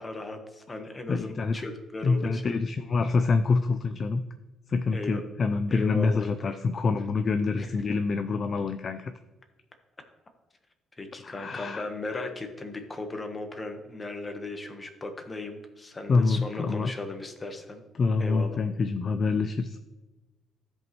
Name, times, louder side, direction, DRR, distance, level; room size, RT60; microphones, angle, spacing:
voice 1, 0.0-2.5 4.9-5.2 5.7-6.6 7.6-7.7 11.0-17.8 18.2-18.6, left 2 dB, 20° left, 5 dB, 1.1 m, -37 dB
voice 2, 1.1-1.6 2.0-4.2 4.7-9.1 11.2-11.8 12.1-12.3 16.1-16.9 18.0-19.8, left 4 dB, 35° left, 9 dB, 0.4 m, -26 dB
15.5 x 5.3 x 3.0 m, 1.1 s
cardioid pair, 145°, 0 cm